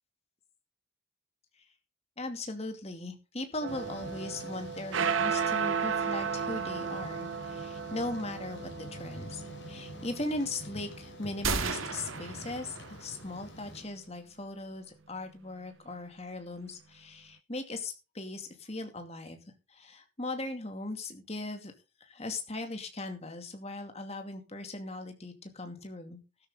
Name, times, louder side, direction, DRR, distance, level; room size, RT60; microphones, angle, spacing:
voice 1, 2.2-21.7 22.0-26.5, left 2 dB, 30° left, 6 dB, 2.4 m, -39 dB
sound 1, 3.6-12.2, right 6 dB, 75° right, 0.7 m, -34 dB
Thunder / Rain, 3.7-13.8, left 1 dB, 60° left, 4.6 m, -47 dB
sound 2, 11.4-13.3, right 4 dB, 90° right, 2.0 m, -34 dB
13.0 x 12.5 x 3.8 m, 0.29 s
head